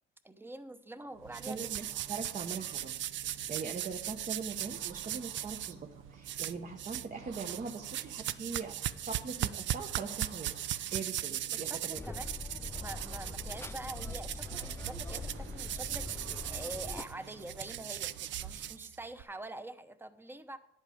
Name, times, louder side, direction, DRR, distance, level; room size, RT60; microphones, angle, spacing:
voice 1, 0.2-1.7 11.5-12.4 12.8-20.6, right 1 dB, 10° right, 11 dB, 0.8 m, -45 dB
sound 1, 1.1-18.9, right 7 dB, 90° right, 0.8 m, -52 dB
sound 2, 1.3-5.7 6.2-7.1 7.3-19.2, right 12 dB, 70° right, 0.5 m, -38 dB
voice 2, 1.5-3.0 3.5-8.7 9.0-10.5 10.9-12.0, right 5 dB, 40° right, 4 dB, 0.9 m, -41 dB
sound 3, 12.0-17.0, left 3 dB, 15° left, 0.3 m, -43 dB
10.5 x 8.1 x 5.0 m, 0.79 s
cardioid pair, 90°, 20 cm